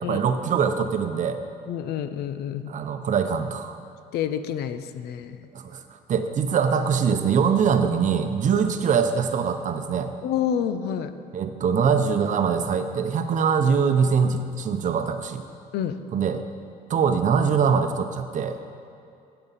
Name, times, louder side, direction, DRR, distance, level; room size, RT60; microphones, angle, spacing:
voice 1, 0.0-1.4 2.7-3.8 5.5-5.8 6.1-10.1 11.3-15.4 16.1-16.4 16.9-18.6, right 6 dB, 50° right, 8 dB, 0.8 m, -23 dB
voice 2, 1.7-2.7 4.1-5.4 8.5-8.6 10.2-11.1 15.7-16.0, left 9 dB, 75° left, 11 dB, 0.6 m, -28 dB
16.0 x 6.8 x 4.1 m, 2.6 s
cardioid pair, 110°, 17 cm